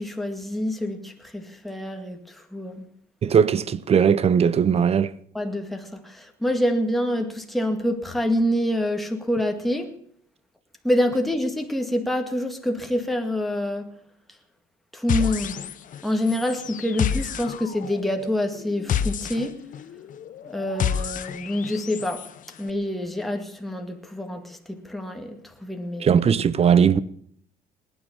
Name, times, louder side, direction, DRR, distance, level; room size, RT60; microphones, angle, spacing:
voice 1, 0.0-2.9 5.3-10.0 10.8-14.0 14.9-15.7 16.0-19.6 20.4-22.3 22.6-26.2, left 1 dB, ahead, 2.1 m, -26 dB
voice 2, 3.2-5.1 26.0-27.0, right 7 dB, 35° right, 0.8 m, -19 dB
sound 1, 15.1-16.0 16.3-22.3, left 8 dB, 50° left, 0.9 m, -29 dB
19.5 x 10.0 x 7.3 m
cardioid pair, 110°, 17 cm